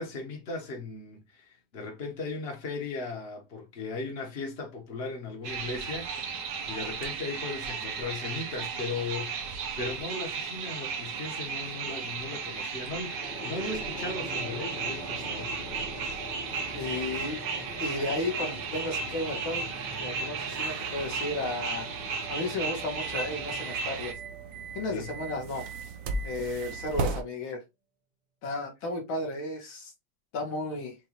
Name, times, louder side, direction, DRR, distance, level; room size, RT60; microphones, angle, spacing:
voice 1, 0.0-16.3 24.9-25.1, left 3 dB, 35° left, 1.2 m, -37 dB
sound 1, 5.4-24.1, right 5 dB, 65° right, 1.4 m, -35 dB
sound 2, 12.9-25.4, equal, 55° left, 2.1 m, -43 dB
voice 2, 16.7-17.4 17.8-19.7 20.0-22.0 22.3-24.2 24.7-25.7 26.2-27.6 28.4-29.9 30.3-31.0, left 2 dB, 75° left, 2.3 m, -33 dB
sound 3, 20.5-27.2, right 3 dB, 90° right, 0.7 m, -38 dB
6.3 x 2.6 x 3.0 m
omnidirectional pair, 2.2 m